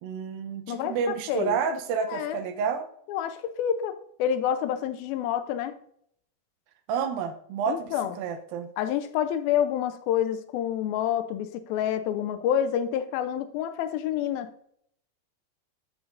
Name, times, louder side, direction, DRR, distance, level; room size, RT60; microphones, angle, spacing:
voice 1, 0.0-2.9 6.9-8.7, right 6 dB, 80° right, 8 dB, 2.5 m, -30 dB
voice 2, 0.7-1.6 2.1-2.4 3.1-5.8 7.7-8.1 8.8-14.5, left 9 dB, 85° left, 9 dB, 2.5 m, -28 dB
9.0 x 7.7 x 2.5 m, 0.68 s
omnidirectional pair, 4.2 m